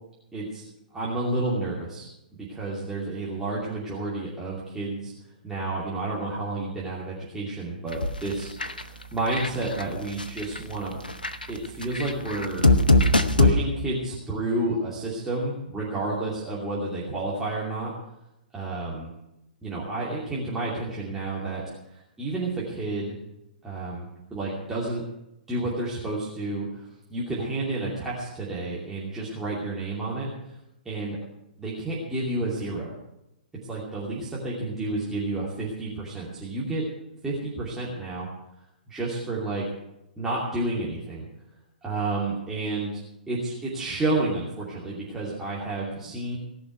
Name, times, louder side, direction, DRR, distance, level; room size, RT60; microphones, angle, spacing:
voice 1, 0.3-0.6 0.9-5.1 5.4-10.9 11.5-12.7 13.3-17.9 18.5-19.1 19.6-21.6 21.9-23.2 23.6-24.0 24.3-25.0 25.5-30.5 30.8-31.2 31.6-32.9 33.6-36.8 37.2-38.3 38.9-39.7 40.2-41.3 41.8-43.0 43.3-46.4, right 2 dB, 5° right, -7 dB, 2.7 m, -30 dB
sound 1, 7.9-8.3 8.6-8.8 9.3-9.8 10.2-10.6 11.0-13.5, left 2 dB, 80° left, 1.0 m, -20 dB
18.0 x 6.1 x 9.4 m, 0.90 s
figure-of-eight pair, 120°, 5 cm